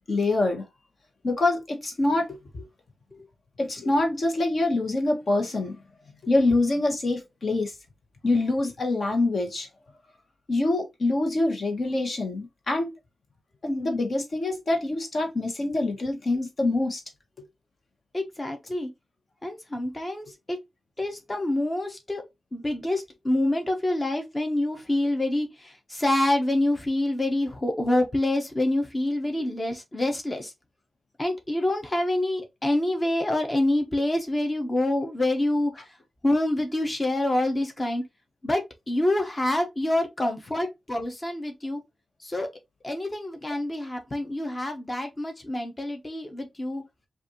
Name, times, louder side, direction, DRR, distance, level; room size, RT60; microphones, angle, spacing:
voice 1, 0.1-0.6 1.2-2.6 3.6-5.8 6.2-7.7 8.2-9.7 10.5-12.9 13.6-17.0 40.2-40.3, left 2 dB, 50° left, 1.2 m, -25 dB
voice 2, 18.1-18.9 19.4-20.6 21.0-22.2 22.5-30.5 31.2-35.7 36.2-38.0 38.4-38.6 38.9-41.8 42.2-42.5 42.8-46.8, left 1 dB, 25° left, 0.9 m, -26 dB
5.1 x 2.6 x 3.0 m
wide cardioid pair, 160°, 0 cm